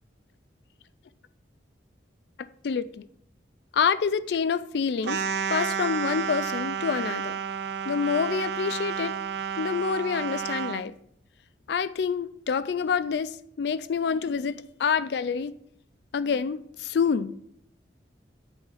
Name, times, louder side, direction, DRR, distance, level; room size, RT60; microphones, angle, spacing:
voice 1, 2.6-3.1 3.7-5.2 5.5-7.4 7.8-9.2 9.6-10.9 11.7-15.5 16.1-17.3, left 6 dB, 65° left, 0.3 m, -27 dB
sound 1, 5.0-10.8, right 7 dB, 60° right, 0.4 m, -31 dB
8.0 x 3.5 x 5.6 m
head